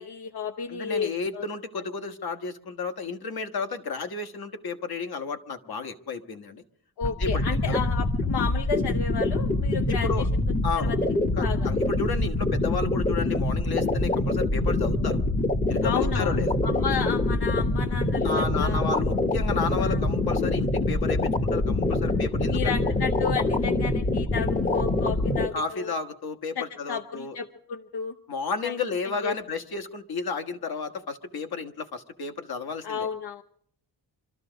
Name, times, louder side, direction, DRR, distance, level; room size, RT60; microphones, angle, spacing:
voice 1, 0.0-1.4 7.0-10.4 10.7-11.0 11.4-11.7 15.8-16.4 16.6-18.9 19.8-20.0 22.1-25.9 26.6-28.1 28.6-28.8 29.2-29.3 32.8-33.4, left 6 dB, 85° left, 4 dB, 0.8 m, -32 dB
voice 2, 0.7-6.6 7.0-7.8 9.9-10.3 10.6-10.9 11.4-15.2 15.7-16.5 18.2-22.8 25.5-27.3 28.3-33.1, left 4 dB, 65° left, 7 dB, 1.3 m, -32 dB
sound 1, 7.0-25.5, left 2 dB, 20° left, 0.7 m, -25 dB
25.5 x 13.5 x 3.9 m, 0.64 s
wide cardioid pair, 155°, 39 cm